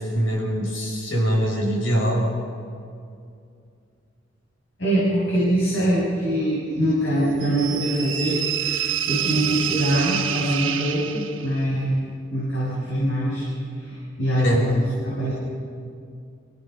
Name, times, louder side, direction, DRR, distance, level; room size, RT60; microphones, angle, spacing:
voice 1, 0.0-2.3 14.4-14.7, equal, 90° left, 0 dB, 6.0 m, -23 dB
voice 2, 4.8-12.0 12.3-13.4 13.7-15.3, right 1 dB, 70° left, -8 dB, 7.7 m, -23 dB
sound 1, 7.4-11.6, right 9 dB, 90° right, 1.5 m, -27 dB
29.5 x 17.0 x 5.5 m, 2.4 s
head